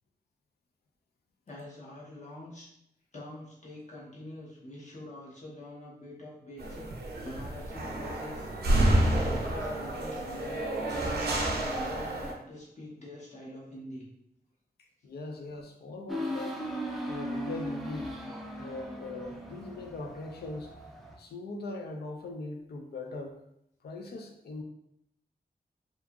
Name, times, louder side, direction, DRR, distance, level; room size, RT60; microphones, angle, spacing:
voice 1, 1.5-2.7 3.1-6.9 7.2-14.1, left 1 dB, 50° left, -5 dB, 0.9 m, -45 dB
sound 1, 6.6-12.3, right 1 dB, 90° right, 0.5 m, -29 dB
voice 2, 15.0-16.6 17.1-18.1 18.6-20.7 21.2-23.4 23.8-24.6, left 2 dB, 90° left, 2 dB, 0.4 m, -40 dB
sound 2, 16.1-21.1, equal, ahead, 0.3 m, -38 dB
2.8 x 2.4 x 2.3 m, 0.77 s
wide cardioid pair, 150°, 16 cm